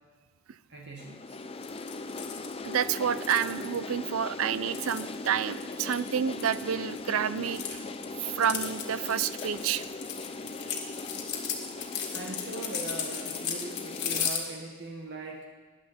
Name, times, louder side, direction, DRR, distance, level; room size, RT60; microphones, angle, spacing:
voice 1, 0.7-1.5 12.1-15.4, right 2 dB, 55° right, -1 dB, 1.5 m, -41 dB
sound 1, 1.0-14.3, left 3 dB, 25° left, 0.6 m, -39 dB
sound 2, 1.6-3.8 4.5-7.0 7.3-14.4, left 8 dB, 55° left, 2.0 m, -36 dB
voice 2, 2.6-7.8 8.2-9.8, right 8 dB, 75° right, 16 dB, 0.5 m, -29 dB
19.5 x 10.5 x 4.3 m, 1.4 s
head